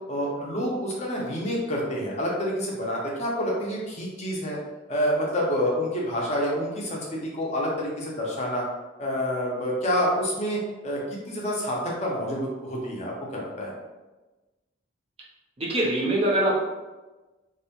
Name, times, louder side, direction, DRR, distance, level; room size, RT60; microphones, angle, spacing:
voice 1, 0.1-4.6 4.9-8.6 9.0-13.7, equal, 35° left, -3 dB, 0.5 m, -28 dB
voice 2, 15.6-16.5, right 1 dB, 30° right, -4 dB, 0.4 m, -23 dB
2.6 x 2.1 x 2.8 m, 1.2 s
head